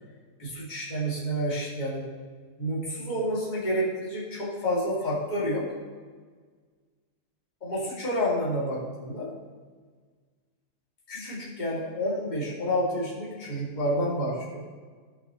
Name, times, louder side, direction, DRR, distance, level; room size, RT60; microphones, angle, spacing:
voice 1, 0.4-2.1 2.6-5.7 7.6-9.3 11.1-14.6, equal, 30° left, -8 dB, 2.5 m, -29 dB
16.0 x 6.4 x 3.1 m, 1.5 s
omnidirectional pair, 1.7 m